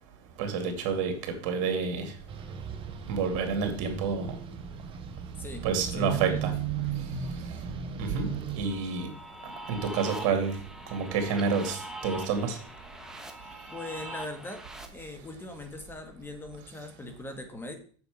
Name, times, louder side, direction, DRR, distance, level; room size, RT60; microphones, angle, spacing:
voice 1, 0.4-1.1 1.4-2.1 3.1-4.3 5.6-6.5 8.0-8.3 8.6-9.1 9.7-10.5 10.9-12.6, right 5 dB, 60° right, 5 dB, 2.3 m, -28 dB
sound 1, 2.3-8.7, right 7 dB, 35° right, 1.3 m, -35 dB
voice 2, 5.4-6.5 13.7-14.6 14.9-17.8, left 2 dB, 15° left, 6 dB, 1.5 m, -41 dB
sound 2, 8.6-14.9, right 1 dB, 5° right, 1.2 m, -42 dB
7.0 x 6.8 x 4.9 m, 0.44 s
supercardioid pair, 115°, 16 cm